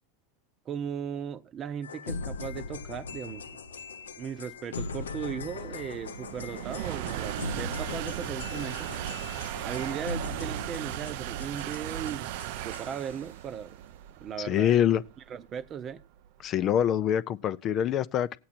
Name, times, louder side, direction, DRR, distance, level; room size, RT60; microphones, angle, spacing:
voice 1, 0.7-3.5 4.2-8.9 9.6-12.4 12.6-13.8 14.2-14.8 15.3-16.0, right 8 dB, 35° right, 0.9 m, -37 dB
sound 1, 1.8-13.2, left 4 dB, 85° left, 0.5 m, -40 dB
sound 2, 3.7-17.0, right 13 dB, 60° right, 0.5 m, -37 dB
voice 2, 14.4-15.0 16.4-18.4, left 10 dB, 40° left, 0.5 m, -25 dB
16.5 x 8.6 x 4.4 m
hypercardioid pair, 90°, 0 cm